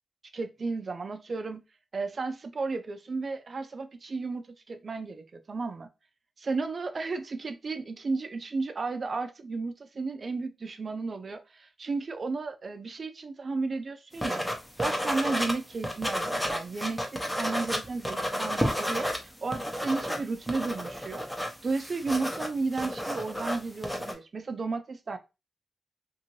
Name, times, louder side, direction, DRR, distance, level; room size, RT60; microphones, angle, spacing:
voice 1, 0.3-1.6 1.9-5.9 6.4-14.4 14.8-21.3 21.6-25.2, right 3 dB, 55° right, 0.4 m, -33 dB
sound 1, 14.2-15.5 15.8-19.2 19.5-24.1, equal, 5° left, 0.7 m, -31 dB
2.6 x 2.5 x 2.9 m
cardioid pair, 60°, 0 cm